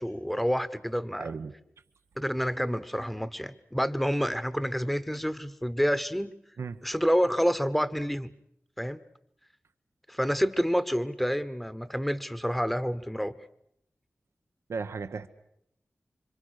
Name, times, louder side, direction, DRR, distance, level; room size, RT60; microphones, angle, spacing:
voice 1, 0.0-1.3 2.2-6.3 6.8-8.3 8.8-9.0 10.1-13.3, equal, ahead, 13 dB, 1.0 m, -28 dB
voice 2, 1.2-1.5 6.6-6.8 14.7-15.3, right 5 dB, 85° right, 9 dB, 1.0 m, -35 dB
27.0 x 25.5 x 6.5 m, 0.75 s
wide cardioid pair, 90°, 5 cm